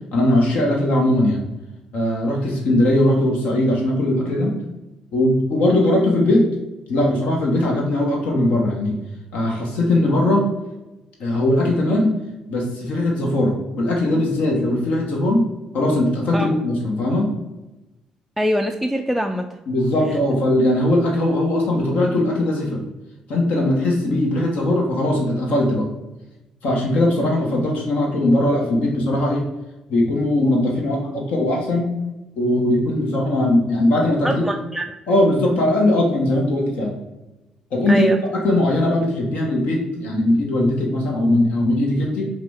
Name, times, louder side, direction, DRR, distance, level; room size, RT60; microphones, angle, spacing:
voice 1, 0.1-1.4 1.9-4.5 5.1-6.4 6.9-9.0 9.3-10.5 11.2-12.1 12.5-15.4 15.7-17.3 19.7-22.8 23.3-25.8 26.6-29.4 29.9-31.9 32.4-34.4 35.1-36.9 37.7-42.3, left 1 dB, 60° left, -1 dB, 0.8 m, -19 dB
voice 2, 18.4-19.6 34.2-34.9 37.9-38.2, equal, ahead, 3 dB, 0.3 m, -23 dB
4.8 x 2.1 x 3.4 m, 1.0 s
hypercardioid pair, 45°, 3 cm